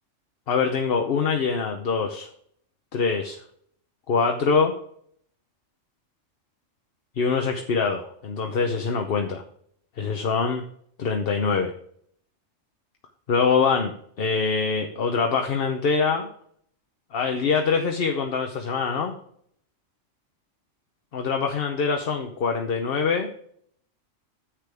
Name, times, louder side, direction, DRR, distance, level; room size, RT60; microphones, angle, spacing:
voice 1, 0.5-2.3 2.9-3.4 4.1-4.7 7.2-9.4 10.0-10.6 11.0-11.7 13.3-13.9 14.2-16.3 17.1-19.1 21.1-23.3, left 5 dB, 50° left, 4 dB, 1.0 m, -24 dB
10.0 x 7.7 x 3.4 m, 0.65 s
omnidirectional pair, 1.3 m